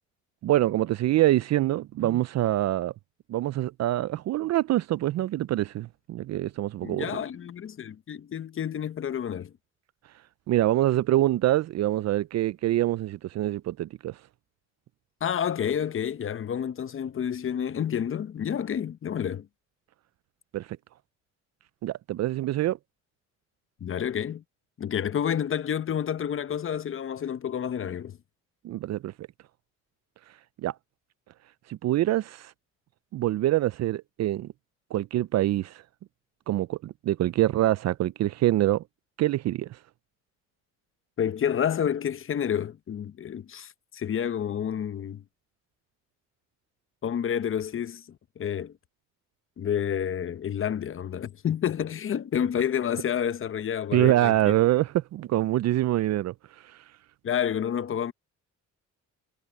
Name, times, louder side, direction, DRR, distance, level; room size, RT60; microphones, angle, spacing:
voice 1, 0.4-2.9 3.3-7.1 10.5-14.2 20.5-20.7 21.8-22.8 28.6-29.3 30.6-30.7 31.7-32.5 33.1-34.5 34.9-35.8 36.5-38.8 39.2-39.8 53.9-56.3 56.6-56.8, right 14 dB, 60° right, 0.4 m, -25 dB
voice 2, 6.8-9.5 15.2-19.5 23.8-24.4 24.8-28.2 41.2-45.2 47.0-48.7 49.6-54.5 57.2-58.1, left 8 dB, 45° left, 0.8 m, -29 dB
cardioid pair, 90°, 30 cm